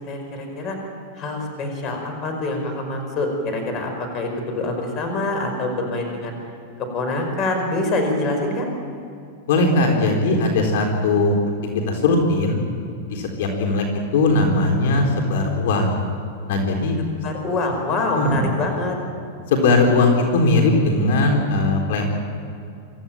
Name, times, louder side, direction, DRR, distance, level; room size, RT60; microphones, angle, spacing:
voice 1, 0.1-0.8 1.2-6.4 6.9-8.7 17.2-19.0, left 2 dB, 30° left, 4 dB, 5.3 m, -25 dB
voice 2, 9.5-11.4 11.9-12.6 13.1-13.9 14.1-16.0 16.5-17.0 18.1-18.5 19.5-22.1, left 2 dB, 70° left, 2 dB, 4.0 m, -19 dB
25.0 x 15.0 x 9.1 m, 2.5 s
supercardioid pair, 150°, 0 cm